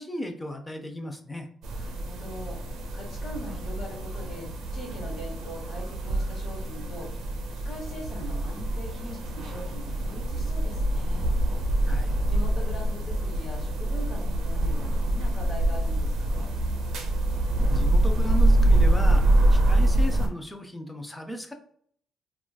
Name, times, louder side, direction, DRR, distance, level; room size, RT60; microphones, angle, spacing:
voice 1, 0.0-1.5 11.9-12.1 17.7-21.5, equal, 15° left, 5 dB, 0.5 m, -36 dB
sound 1, 1.6-20.3, right 1 dB, 80° right, 0.6 m, -25 dB
voice 2, 1.7-11.3 12.3-16.5, equal, 60° left, -1 dB, 1.4 m, -42 dB
3.8 x 2.4 x 2.3 m, 0.62 s
cardioid pair, 90°, 0 cm